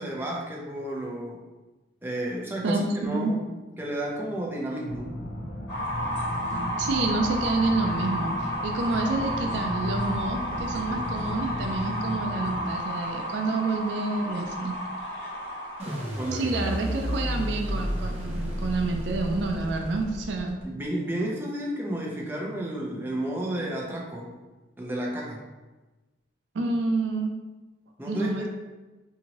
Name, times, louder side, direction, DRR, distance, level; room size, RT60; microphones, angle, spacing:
voice 1, 0.0-1.4 2.0-3.5 3.8-5.1 15.8-16.6 16.8-17.1 20.6-24.3 24.8-25.4 28.0-28.5, right 1 dB, 10° right, -3 dB, 0.4 m, -32 dB
voice 2, 2.6-3.3 6.8-14.7 16.3-20.6 26.5-27.3 28.0-28.5, right 3 dB, 75° right, 3 dB, 0.4 m, -28 dB
sound 1, 4.9-12.6, left 1 dB, 55° left, 0.7 m, -35 dB
sound 2, 5.7-16.0, equal, 70° left, 1.3 m, -32 dB
sound 3, 15.8-20.8, equal, 35° right, 0.9 m, -31 dB
2.8 x 2.6 x 2.9 m, 1.2 s
head